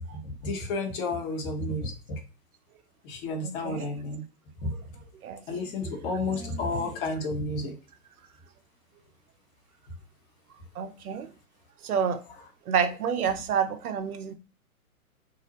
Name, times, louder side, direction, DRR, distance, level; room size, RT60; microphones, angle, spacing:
voice 1, 0.4-2.2 3.1-4.2 4.6-4.7 5.5-7.7, left 2 dB, 40° left, 0.8 m, -31 dB
voice 2, 3.4-3.9 4.7-4.8 5.2-6.9 10.8-11.3 11.8-12.2 12.7-14.3, right 7 dB, 85° right, 0.5 m, -30 dB
2.5 x 2.0 x 2.7 m
hypercardioid pair, 115°, 43 cm